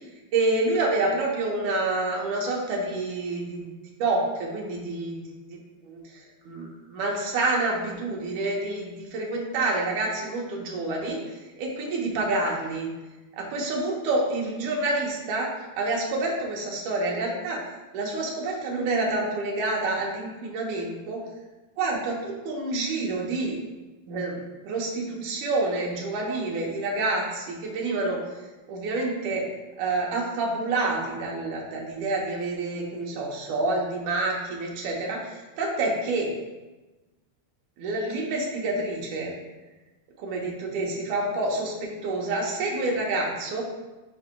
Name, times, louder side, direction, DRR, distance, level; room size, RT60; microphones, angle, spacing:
voice 1, 0.3-3.7 4.0-11.2 11.6-12.9 13.4-17.7 17.9-21.2 21.8-23.5 24.1-24.4 24.6-28.2 28.7-29.4 29.8-36.3 37.8-39.3 40.2-43.6, right 2 dB, 70° right, -2 dB, 2.1 m, -28 dB
8.8 x 4.8 x 2.2 m, 1.1 s
omnidirectional pair, 4.3 m